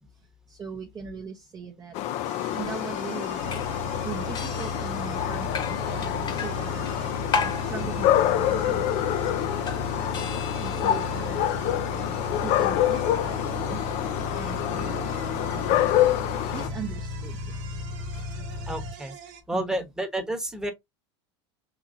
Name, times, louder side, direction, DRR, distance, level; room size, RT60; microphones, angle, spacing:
voice 1, 0.5-2.0 2.5-3.6 4.0-6.9 7.3-11.6 11.9-13.8 14.3-15.9 16.5-17.6 19.5-19.9, right 6 dB, 25° right, 0.7 m, -40 dB
sound 1, 1.9-16.7, left 12 dB, 50° left, 0.4 m, -27 dB
sound 2, 2.2-19.4, right 10 dB, 60° right, 0.9 m, -45 dB
sound 3, 3.4-18.9, left 3 dB, 30° left, 1.1 m, -34 dB
voice 2, 14.5-14.8 18.7-19.2 19.5-20.7, right 1 dB, 5° right, 1.0 m, -31 dB
3.8 x 2.9 x 2.5 m
supercardioid pair, 110°, 15 cm